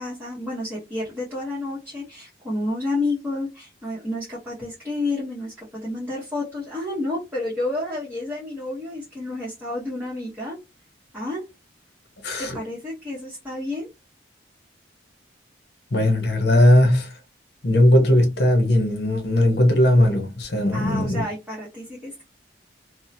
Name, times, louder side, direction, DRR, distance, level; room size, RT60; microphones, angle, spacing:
voice 1, 0.0-10.6 11.1-11.4 12.4-13.9 20.7-22.2, left 2 dB, 10° right, 0.9 m, -30 dB
voice 2, 12.2-12.6 15.9-17.1 17.6-21.2, left 1 dB, 60° left, 0.8 m, -18 dB
2.7 x 2.1 x 2.7 m
head